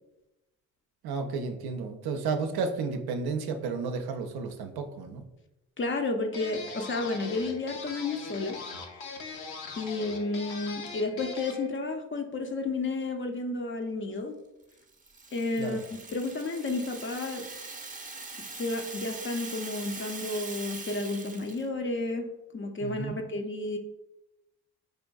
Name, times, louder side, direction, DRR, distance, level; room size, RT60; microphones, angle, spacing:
voice 1, 1.0-5.2 15.6-15.8 22.8-23.2, right 4 dB, 65° right, 6 dB, 0.5 m, -32 dB
voice 2, 5.8-8.6 9.8-14.4 15.3-15.8 16.1-17.5 18.6-22.3 22.5-23.8, left 2 dB, 30° left, 5 dB, 0.5 m, -31 dB
sound 1, 6.3-11.7, left 4 dB, 70° left, 0.7 m, -41 dB
Rattle (instrument), 14.7-21.7, right 3 dB, 20° right, 0.6 m, -42 dB
4.5 x 2.5 x 2.3 m, 0.94 s
hypercardioid pair, 45°, 40 cm